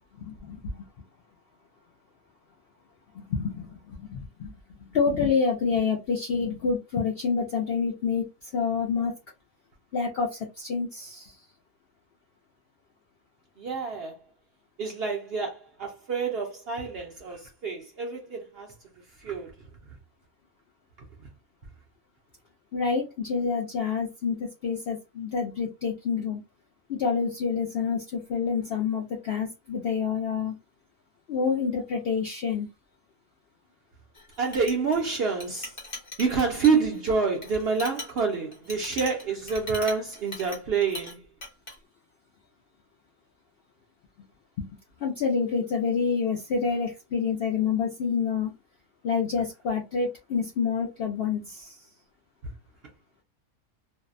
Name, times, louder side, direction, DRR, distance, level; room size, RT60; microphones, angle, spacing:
voice 1, 0.2-0.8 3.1-4.5 4.8-9.1 9.9-11.4 22.7-26.4 26.9-30.5 31.3-32.7 44.6-44.7 45.0-48.5 49.0-51.8, left 5 dB, 70° left, 0.5 m, -28 dB
voice 2, 13.6-14.2 14.8-18.7 19.2-19.6 34.4-35.7 36.2-41.2 52.4-52.5, right 5 dB, 65° right, 0.6 m, -27 dB
Chink clink, 34.1-41.1 41.4-41.7, left 2 dB, 30° left, 0.7 m, -40 dB
2.6 x 2.0 x 2.4 m
omnidirectional pair, 1.5 m